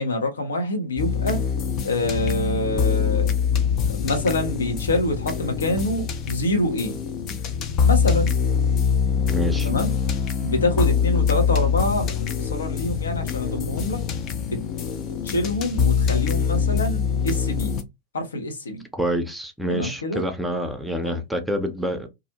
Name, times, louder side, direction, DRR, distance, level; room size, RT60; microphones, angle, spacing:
voice 1, 0.0-1.4 1.8-3.3 3.8-7.0 7.8-8.3 9.6-9.9 10.4-14.0 14.4-14.6 15.2-17.8 18.1-18.8 19.7-20.2 21.0-21.2, left 1 dB, 75° left, 0.7 m, -26 dB
sound 1, 1.0-17.8, left 6 dB, 40° left, 0.5 m, -24 dB
voice 2, 9.3-9.7 18.9-22.1, equal, 5° right, 0.6 m, -27 dB
2.4 x 2.0 x 2.8 m
figure-of-eight pair, 90°, 0 cm